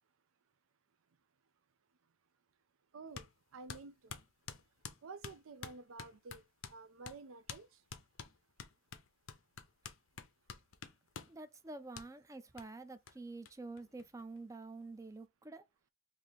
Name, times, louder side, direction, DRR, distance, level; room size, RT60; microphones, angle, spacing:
voice 1, 2.9-3.3 3.5-4.2 5.0-6.4 6.7-7.7, right 4 dB, 85° right, 0.5 m, -50 dB
sound 1, 3.1-3.3 3.7-6.8 7.0-7.2 7.5-7.6 7.9-11.4 11.9-12.1 12.6-12.7 13.1-13.2 13.4-13.5 13.8-14.5, left 6 dB, 80° left, 0.6 m, -48 dB
voice 2, 11.3-15.6, right 3 dB, 15° right, 0.3 m, -48 dB
3.1 x 2.6 x 4.1 m
head